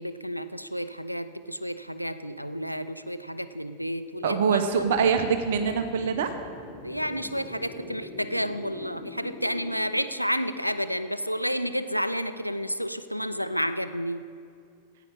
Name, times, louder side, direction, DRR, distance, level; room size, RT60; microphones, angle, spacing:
voice 1, 0.0-4.6 6.8-14.2, equal, 90° right, 12 dB, 0.5 m, -31 dB
voice 2, 4.2-6.3, right 6 dB, 55° right, 7 dB, 0.8 m, -24 dB
sound 1, 4.7-9.8, left 1 dB, 25° left, 3.5 m, -43 dB
14.5 x 9.2 x 5.3 m, 2.3 s
figure-of-eight pair, 90°, 0 cm